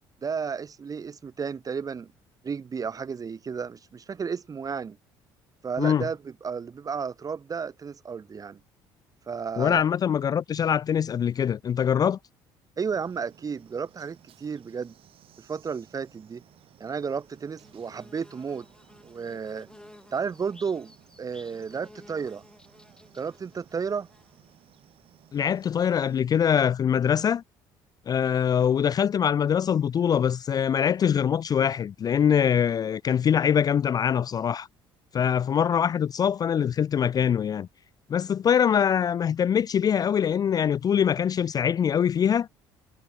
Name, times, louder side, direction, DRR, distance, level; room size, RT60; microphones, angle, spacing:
voice 1, 0.2-2.1 2.4-5.0 5.6-8.6 9.3-9.8 12.8-14.9 15.4-16.4 16.8-18.7 19.0-19.7 20.1-20.9 21.2-22.4 23.1-24.1, right 6 dB, 35° right, 1.4 m, -33 dB
voice 2, 5.8-6.1 9.6-12.2 25.3-27.4 28.1-34.7 35.1-37.7 38.1-42.5, left 8 dB, 40° left, 0.4 m, -23 dB
sound 1, 12.8-26.2, right 11 dB, 60° right, 3.6 m, -58 dB
Bird / Buzz, 17.2-24.9, left 1 dB, 5° left, 5.7 m, -54 dB
supercardioid pair, 75°, 10 cm